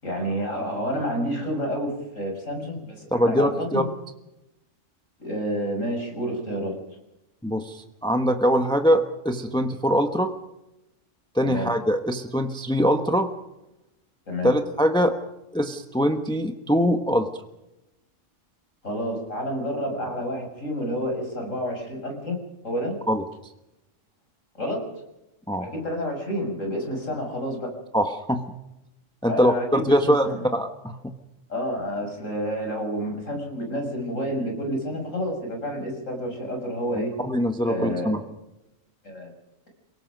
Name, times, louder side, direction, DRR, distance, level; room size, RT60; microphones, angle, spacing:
voice 1, 0.0-3.9 5.2-6.7 11.4-11.7 14.3-14.5 18.8-22.4 22.6-23.0 24.6-24.9 25.6-27.8 29.3-30.4 31.5-37.1 37.6-38.1 39.0-39.3, equal, 80° left, 2 dB, 7.0 m, -29 dB
voice 2, 3.1-3.8 7.4-10.3 11.3-13.3 14.4-15.2 15.5-17.3 23.1-23.2 25.5-25.7 27.9-28.4 29.2-31.1 37.2-38.2, equal, 5° left, 6 dB, 1.2 m, -23 dB
29.0 x 18.0 x 5.3 m, 0.92 s
omnidirectional pair, 1.3 m